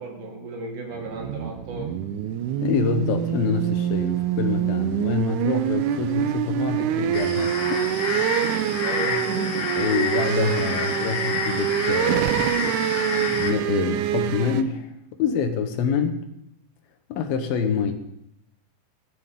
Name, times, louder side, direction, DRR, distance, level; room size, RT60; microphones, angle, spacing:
voice 1, 0.0-1.9 8.8-9.6, right 3 dB, 60° right, 1 dB, 3.4 m, -33 dB
sound 1, 0.9-14.6, right 11 dB, 80° right, 1.9 m, -25 dB
voice 2, 2.6-8.2 9.8-12.5 13.1-14.9 15.2-16.2 17.1-17.9, left 6 dB, 80° left, 7 dB, 2.9 m, -26 dB
sound 2, 7.1-13.5, left 5 dB, 55° left, 1.6 m, -29 dB
16.0 x 13.0 x 3.7 m, 0.79 s
omnidirectional pair, 4.1 m